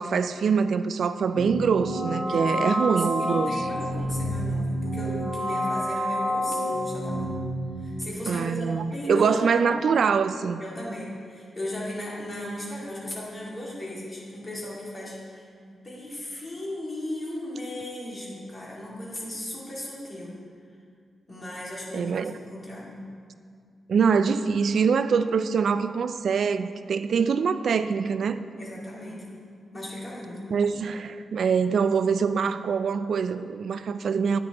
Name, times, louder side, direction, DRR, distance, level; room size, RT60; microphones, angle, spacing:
voice 1, 0.0-3.7 8.3-10.6 21.9-22.3 23.9-28.4 30.5-34.4, right 6 dB, 65° right, 0.3 m, -24 dB
sound 1, 1.4-7.7, equal, 5° left, 1.4 m, -28 dB
voice 2, 2.1-7.4 7.8-9.4 10.6-20.3 21.3-23.0 28.6-29.4 29.7-30.5, left 1 dB, 25° left, 2.2 m, -36 dB
10.5 x 9.1 x 3.0 m
wide cardioid pair, 140°, 0 cm